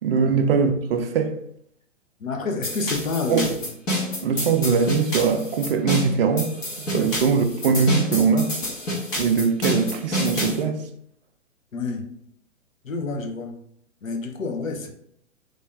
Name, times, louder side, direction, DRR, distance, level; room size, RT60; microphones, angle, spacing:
voice 1, 0.0-1.4 3.3-3.5 4.2-6.5 6.8-8.5 9.2-10.9, right 5 dB, 45° right, 0.5 m, -21 dB
voice 2, 2.2-3.6 6.9-7.1 11.7-12.1 12.8-13.6 14.0-14.9, left 3 dB, 80° left, 0.8 m, -28 dB
sound 1, 2.6-10.6, left 1 dB, 10° left, 0.4 m, -28 dB
3.3 x 2.6 x 3.4 m
figure-of-eight pair, 115°, 39 cm